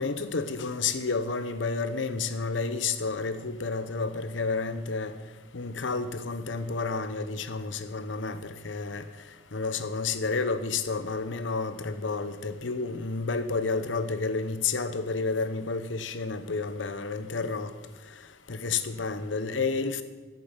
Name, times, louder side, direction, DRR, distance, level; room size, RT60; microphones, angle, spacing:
voice 1, 0.0-5.1 5.5-9.0 9.5-17.7 18.5-20.0, left 4 dB, 90° left, 12 dB, 0.9 m, -30 dB
11.0 x 8.4 x 7.2 m, 1.3 s
head